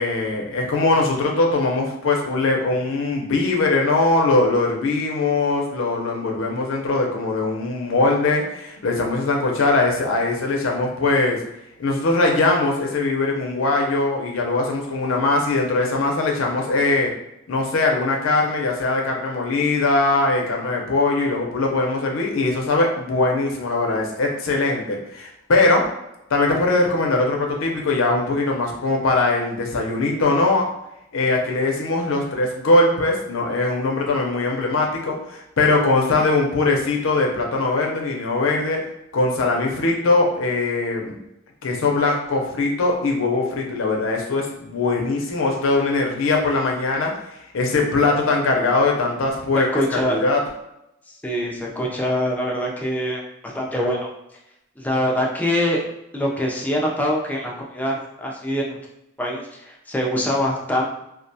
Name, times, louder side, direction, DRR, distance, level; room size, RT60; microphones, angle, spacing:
voice 1, 0.0-11.4 11.8-17.1 17.5-25.8 26.3-30.6 31.1-38.8 39.1-41.2 41.6-47.1 47.5-50.4, left 3 dB, 80° left, 1 dB, 0.5 m, -21 dB
voice 2, 49.5-50.2 51.2-54.1 54.8-55.8 56.1-58.8 59.2-60.9, equal, 10° left, -2 dB, 0.4 m, -24 dB
2.3 x 2.1 x 2.6 m, 0.85 s
head